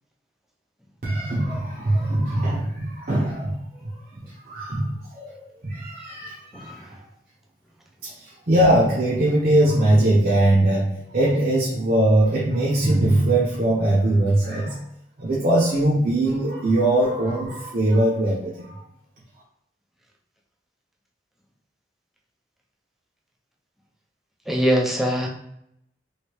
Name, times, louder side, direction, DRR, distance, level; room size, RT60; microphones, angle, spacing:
voice 1, 1.0-3.6 3.8-3.9 4.4-6.9 8.0-14.8 15.2-18.8, right 1 dB, 55° right, -7 dB, 0.8 m, -21 dB
voice 2, 24.5-25.3, equal, ahead, 0 dB, 0.4 m, -22 dB
3.1 x 2.7 x 3.1 m, 0.75 s
head